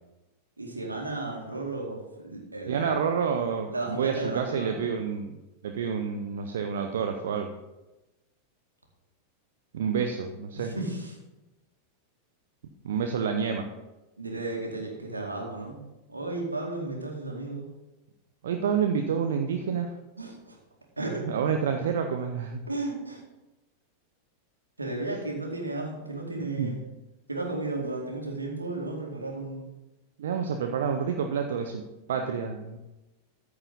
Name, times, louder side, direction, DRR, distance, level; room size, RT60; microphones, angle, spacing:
voice 1, 0.6-3.0 3.7-4.8 10.5-11.2 14.2-15.8 16.1-17.7 20.2-20.6 21.0-21.3 22.7-23.2 24.8-26.8 27.3-29.6, right 2 dB, 80° right, 0 dB, 2.2 m, -34 dB
voice 2, 2.7-5.4 5.6-7.5 9.7-10.7 12.8-13.7 18.4-19.9 21.2-22.6 26.4-26.8 30.2-31.8 32.1-32.8, right 6 dB, 60° right, 5 dB, 0.7 m, -28 dB
14.0 x 4.9 x 5.5 m, 1.0 s
figure-of-eight pair, 90°, 0 cm